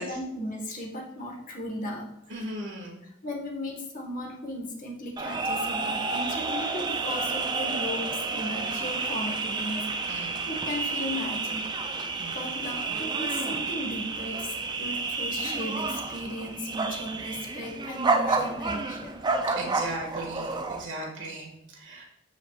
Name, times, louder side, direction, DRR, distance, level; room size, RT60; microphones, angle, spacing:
voice 1, 0.0-2.5 3.2-9.9 10.4-11.7 12.3-19.2, left 1 dB, 45° left, 0 dB, 1.6 m, -36 dB
voice 2, 2.3-3.0 10.1-10.5 12.2-12.4 19.5-22.0, right 1 dB, 70° right, -1 dB, 2.0 m, -37 dB
sound 1, 5.2-20.8, right 3 dB, 20° right, 0.5 m, -30 dB
12.0 x 5.1 x 2.4 m, 0.82 s
head